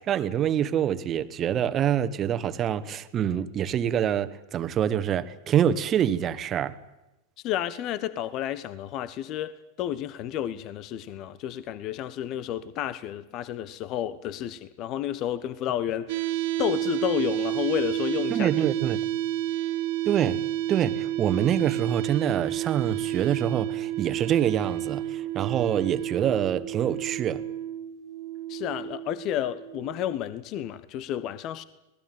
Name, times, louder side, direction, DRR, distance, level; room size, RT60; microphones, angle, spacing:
voice 1, 0.0-6.8 18.3-19.0 20.0-20.4 20.7-27.4, right 9 dB, 30° right, 1.6 m, -26 dB
voice 2, 7.4-9.5 9.8-16.3 16.6-18.5 28.5-31.6, left 11 dB, 35° left, 1.1 m, -31 dB
sound 1, 16.1-30.0, right 14 dB, 50° right, 1.5 m, -30 dB
26.5 x 19.5 x 9.3 m
figure-of-eight pair, 90°, 0 cm